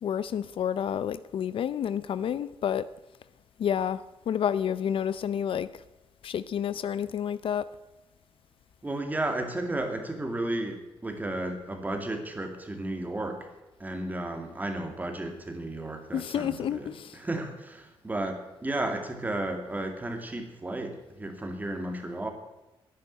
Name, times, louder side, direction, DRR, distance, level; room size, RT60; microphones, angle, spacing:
voice 1, 0.0-2.9 3.6-5.8 6.2-7.7 16.1-17.2, left 9 dB, 65° left, 16 dB, 0.5 m, -30 dB
voice 2, 8.8-13.5 13.8-16.9 17.2-22.3, right 1 dB, 15° right, 5 dB, 2.2 m, -33 dB
11.0 x 10.5 x 9.3 m, 0.99 s
wide cardioid pair, 140°, 10 cm